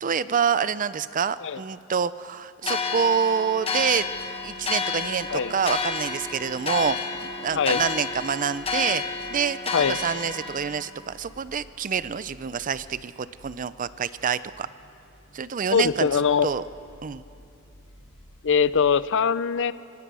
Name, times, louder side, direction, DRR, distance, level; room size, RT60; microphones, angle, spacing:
voice 1, 0.0-4.1 4.4-9.0 9.3-14.7 15.3-16.6 17.0-17.2, right 7 dB, 40° right, 16 dB, 0.5 m, -27 dB
sound 1, 2.6-10.8, left 4 dB, 25° left, 1.3 m, -30 dB
sound 2, 3.7-19.0, equal, 80° left, 5.7 m, -53 dB
voice 2, 15.7-16.5 18.4-19.7, left 6 dB, 60° left, 16 dB, 0.6 m, -22 dB
25.5 x 18.0 x 6.2 m, 2.8 s
head